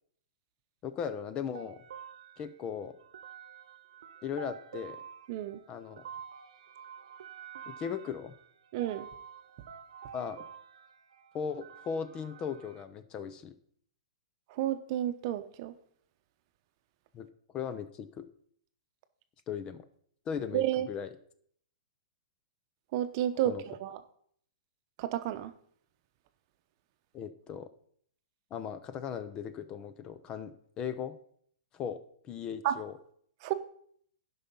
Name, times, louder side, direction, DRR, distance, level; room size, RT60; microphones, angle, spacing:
voice 1, 0.8-1.8 2.4-2.9 4.2-5.0 5.7-6.0 7.7-8.3 10.1-10.5 11.3-13.5 17.1-17.3 17.5-18.3 19.5-19.8 20.3-21.1 23.4-23.6 27.1-27.7 28.5-31.2 31.7-33.0, left 7 dB, 25° left, 12 dB, 0.7 m, -38 dB
sound 1, 1.5-12.8, right 8 dB, 70° right, 1.0 m, -49 dB
voice 2, 5.3-5.6 8.7-9.1 14.5-15.7 20.5-20.9 22.9-24.0 25.0-25.5 32.6-32.7 33.4-33.5, right 12 dB, 45° right, 10 dB, 0.8 m, -31 dB
11.5 x 5.7 x 5.5 m, 0.62 s
hypercardioid pair, 145°, 3 cm